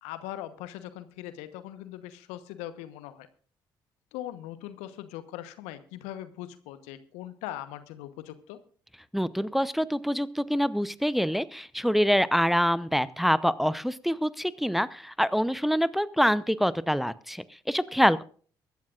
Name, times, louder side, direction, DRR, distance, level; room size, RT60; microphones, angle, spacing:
voice 1, 0.0-3.3 4.1-8.6, left 13 dB, 75° left, 12 dB, 1.1 m, -40 dB
voice 2, 9.1-18.2, equal, ahead, 16 dB, 0.8 m, -25 dB
23.5 x 12.0 x 2.5 m, 0.43 s
hypercardioid pair, 45°, 11 cm